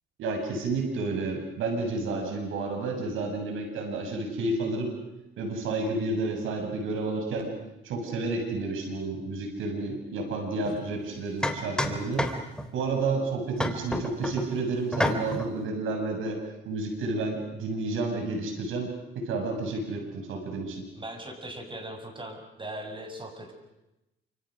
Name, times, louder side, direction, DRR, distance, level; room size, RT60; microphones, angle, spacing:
voice 1, 0.2-4.9 5.4-7.5 7.8-12.3 12.7-16.4 16.7-20.9, right 3 dB, 85° right, 3 dB, 7.3 m, -30 dB
sound 1, 10.6-10.8 11.4-12.7 13.6-14.5 14.9-15.5, left 1 dB, 5° left, 3.2 m, -29 dB
voice 2, 21.0-23.5, right 1 dB, 25° right, 4 dB, 7.4 m, -39 dB
28.5 x 27.0 x 6.5 m, 0.93 s
cardioid pair, 90°, 20 cm